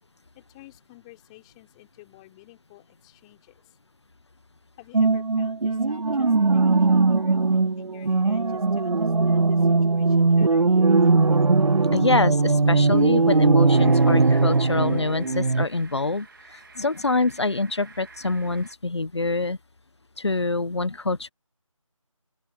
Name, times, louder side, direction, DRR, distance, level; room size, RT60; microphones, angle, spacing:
voice 1, 0.3-3.8 4.8-10.7, left 20 dB, 10° left, 4.8 m, -51 dB
sound 1, 4.9-15.7, right 3 dB, 80° right, 0.7 m, -20 dB
voice 2, 11.9-19.6 20.2-21.3, left 3 dB, 50° left, 1.4 m, -25 dB
sound 2, 13.7-18.7, right 4 dB, 40° right, 2.7 m, -49 dB
open air
figure-of-eight pair, 165°, 18 cm